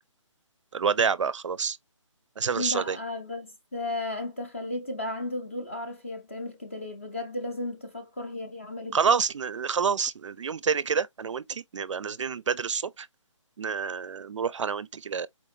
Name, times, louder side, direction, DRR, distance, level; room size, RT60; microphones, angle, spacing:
voice 1, 0.7-1.8 2.4-3.0 8.9-13.1 13.6-15.3, right 6 dB, 70° right, 0.4 m, -28 dB
voice 2, 2.6-9.0, left 2 dB, 25° left, 0.5 m, -34 dB
4.3 x 3.2 x 2.4 m
hypercardioid pair, 175°, 16 cm